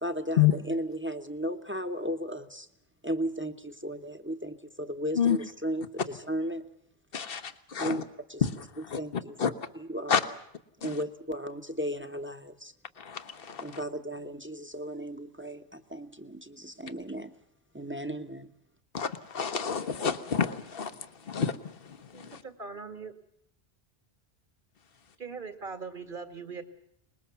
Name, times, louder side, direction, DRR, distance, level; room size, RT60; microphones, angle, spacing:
voice 1, 0.0-2.7 3.0-6.6 7.8-8.0 8.3-10.2 10.8-12.7 13.6-17.3 17.7-18.5, equal, 10° right, 7 dB, 1.1 m, -35 dB
voice 2, 7.1-8.0 8.4-8.5 8.9-9.0 9.4-9.5 10.1-10.2 10.8-10.9 13.0-13.6 18.9-20.9 21.3-21.7 22.1-22.4, left 8 dB, 65° left, 11 dB, 1.4 m, -28 dB
voice 3, 22.1-23.1 25.2-26.6, right 5 dB, 55° right, 8 dB, 2.1 m, -40 dB
24.5 x 20.5 x 7.1 m, 0.73 s
omnidirectional pair, 1.0 m